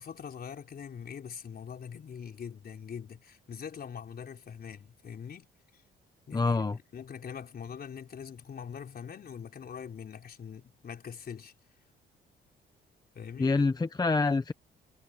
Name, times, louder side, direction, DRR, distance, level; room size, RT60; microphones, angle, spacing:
voice 1, 0.0-5.5 6.3-6.6 6.9-11.5 13.1-13.6, left 7 dB, 50° left, 4.4 m, -43 dB
voice 2, 6.3-6.8 13.4-14.5, left 3 dB, 20° left, 0.8 m, -26 dB
cardioid pair, 90°, 20 cm